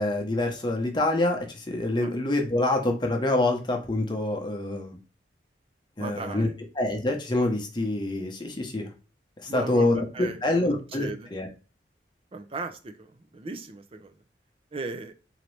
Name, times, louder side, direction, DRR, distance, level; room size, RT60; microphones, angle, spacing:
voice 1, 0.0-5.0 6.0-6.5 6.7-8.9 9.4-11.5, left 2 dB, 25° left, 0.8 m, -26 dB
voice 2, 6.0-6.5 9.5-11.3 12.3-14.1 14.7-15.1, right 3 dB, 30° right, 0.5 m, -37 dB
3.9 x 2.9 x 3.2 m
head